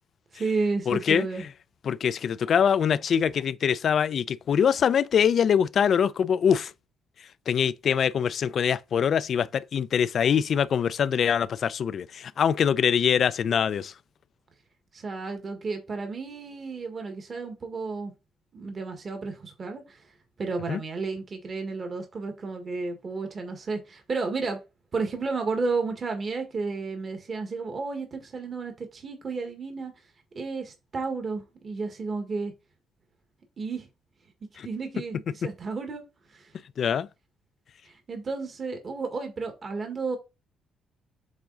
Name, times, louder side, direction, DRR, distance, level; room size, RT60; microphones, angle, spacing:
voice 1, 0.3-1.4 14.9-18.1 18.5-20.0 20.4-24.6 24.9-29.9 30.3-32.5 33.6-33.9 34.6-36.0 36.3-36.5 37.8-40.2, right 4 dB, 40° right, 1.5 m, -32 dB
voice 2, 0.9-1.3 1.8-6.7 7.5-13.9 20.7-20.8 34.6-34.7 36.8-37.1, left 8 dB, 55° left, 0.4 m, -23 dB
7.2 x 3.6 x 3.9 m
cardioid pair, 105°, 0 cm